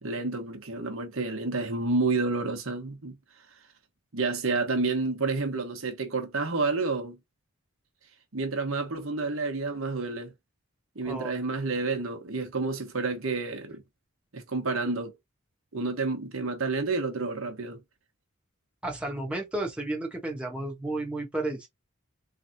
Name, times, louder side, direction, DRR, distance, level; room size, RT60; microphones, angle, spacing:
voice 1, 0.0-3.2 4.1-7.2 8.3-10.3 10.9-13.8 14.3-15.1 15.7-17.8, right 3 dB, 65° right, 1.2 m, -29 dB
voice 2, 18.8-21.7, right 2 dB, 5° right, 1.3 m, -32 dB
3.9 x 3.4 x 2.8 m
head